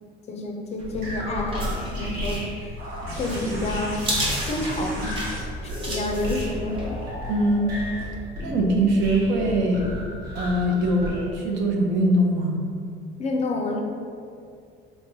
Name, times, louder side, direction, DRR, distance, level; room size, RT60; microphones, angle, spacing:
voice 1, 0.3-2.8 3.1-4.0 4.4-5.3 5.6-6.8 13.2-13.8, left 2 dB, 35° left, 1 dB, 0.4 m, -29 dB
sound 1, 0.8-7.0, right 1 dB, 25° right, 0.8 m, -33 dB
sound 2, 0.9-11.3, equal, 55° right, 1.1 m, -33 dB
sound 3, 2.8-8.1 9.4-9.5, right 1 dB, 90° right, 1.3 m, -38 dB
voice 2, 7.3-7.7 8.4-9.9 10.3-12.6, right 1 dB, 70° right, 1 dB, 0.7 m, -22 dB
4.5 x 3.0 x 2.7 m, 2.3 s
cardioid pair, 160°, 20 cm